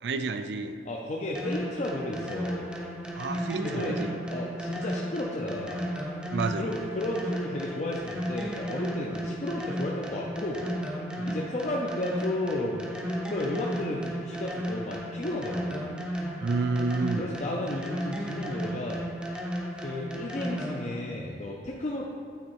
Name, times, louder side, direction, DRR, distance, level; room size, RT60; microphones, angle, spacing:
voice 1, 0.0-0.8 3.1-4.1 6.3-6.7 11.2-11.4 16.4-17.3, right 3 dB, 75° right, 9 dB, 0.4 m, -30 dB
voice 2, 0.9-2.7 3.6-4.0 4.3-5.8 6.6-10.7 11.2-12.9 13.3-16.0 17.2-19.1 19.7-22.0, left 1 dB, 40° left, -3 dB, 0.5 m, -33 dB
sound 1, 1.3-21.0, equal, 5° right, 0.6 m, -34 dB
8.9 x 4.1 x 4.6 m, 2.3 s
head